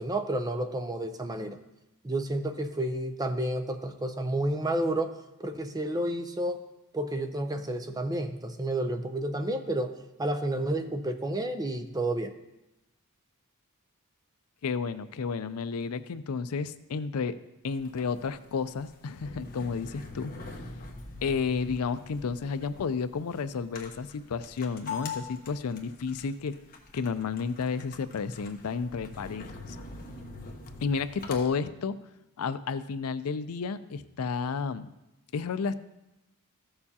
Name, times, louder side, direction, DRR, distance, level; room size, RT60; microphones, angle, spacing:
voice 1, 0.0-1.6 2.0-6.6 6.9-12.3, right 1 dB, 15° right, 6 dB, 0.6 m, -31 dB
voice 2, 14.6-17.4 17.6-20.3 21.2-26.5 26.9-29.6 30.8-32.0 32.4-34.9 35.3-35.7, left 5 dB, 75° left, 13 dB, 0.4 m, -31 dB
sound 1, 17.7-31.4, left 4 dB, 40° left, 1.0 m, -44 dB
14.0 x 6.8 x 2.8 m, 0.94 s
head